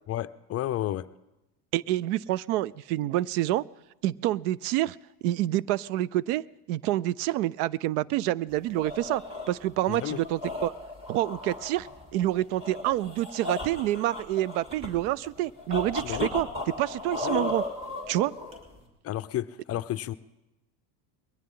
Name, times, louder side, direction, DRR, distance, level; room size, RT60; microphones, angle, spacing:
voice 1, 0.1-1.1 9.9-10.2 16.0-16.3 17.2-17.5 19.0-20.1, left 13 dB, 35° left, 14 dB, 0.5 m, -31 dB
voice 2, 1.7-3.6 4.0-5.0 5.2-9.2 9.5-10.7 11.1-16.5 16.8-17.6 18.1-18.3, right 14 dB, 85° right, 23 dB, 0.6 m, -27 dB
sound 1, 8.5-18.9, left 2 dB, 15° right, 3.3 m, -36 dB
21.0 x 18.0 x 3.8 m, 0.98 s
supercardioid pair, 115°, 44 cm